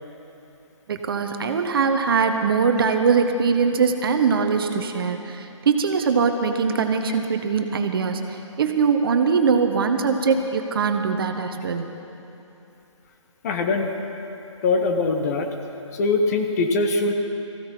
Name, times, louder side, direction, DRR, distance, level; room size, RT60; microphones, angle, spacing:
voice 1, 0.9-11.9, right 5 dB, 45° right, 6 dB, 1.1 m, -22 dB
voice 2, 13.4-13.9 14.6-15.5 15.9-17.1, left 3 dB, 30° left, 4 dB, 1.2 m, -22 dB
18.5 x 15.5 x 4.6 m, 2.9 s
figure-of-eight pair, 145°, 16 cm